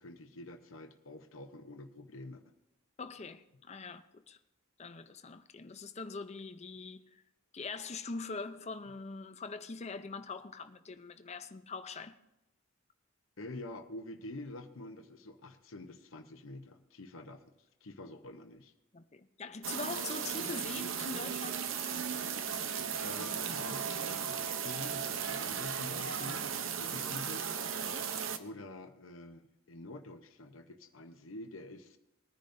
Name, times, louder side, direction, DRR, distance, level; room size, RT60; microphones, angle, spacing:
voice 1, 0.0-2.4 13.4-17.5 17.8-18.7 23.0-27.5 28.4-32.0, left 2 dB, 85° left, 0.9 m, -47 dB
voice 2, 3.0-4.4 4.8-7.2 7.5-12.2 18.9-21.6 27.9-28.0, left 4 dB, 35° left, 0.6 m, -43 dB
sound 1, 19.6-28.4, right 7 dB, 80° right, 0.8 m, -36 dB
20.5 x 10.5 x 2.7 m
head